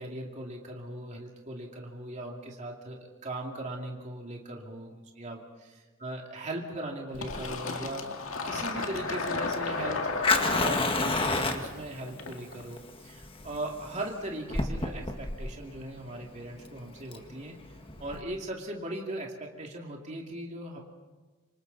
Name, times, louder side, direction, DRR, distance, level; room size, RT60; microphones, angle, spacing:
voice 1, 0.0-8.1 8.4-17.6 18.0-20.8, right 1 dB, 35° right, 0 dB, 2.5 m, -39 dB
Fire, 7.1-18.2, left 3 dB, 25° left, 1.6 m, -32 dB
Fill (with liquid), 7.2-12.6, left 3 dB, 85° left, 2.0 m, -34 dB
27.0 x 25.5 x 4.1 m, 1.3 s
head